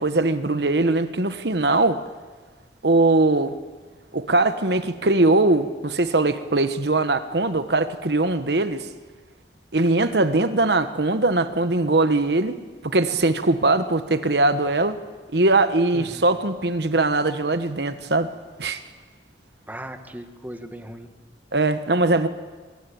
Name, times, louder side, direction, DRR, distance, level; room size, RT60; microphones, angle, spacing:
voice 1, 0.0-2.0 2.8-3.6 4.1-8.9 9.7-12.6 12.8-15.0 15.3-18.3 18.6-18.8 21.5-22.3, right 2 dB, 70° right, 10 dB, 1.4 m, -21 dB
voice 2, 19.7-21.1, right 1 dB, 10° right, 7 dB, 1.8 m, -37 dB
24.5 x 22.5 x 8.8 m, 1.3 s
head